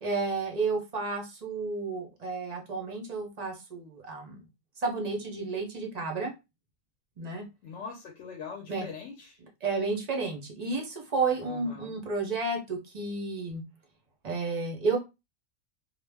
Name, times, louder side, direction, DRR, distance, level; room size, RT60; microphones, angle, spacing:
voice 1, 0.0-4.5 4.8-6.3 7.2-7.4 8.7-8.9 9.6-13.6 14.2-15.0, right 3 dB, 45° right, 2 dB, 0.5 m, -31 dB
voice 2, 7.6-9.4 11.4-12.0, left 6 dB, 65° left, 0 dB, 0.8 m, -42 dB
2.4 x 2.2 x 3.3 m, 0.24 s
omnidirectional pair, 1.5 m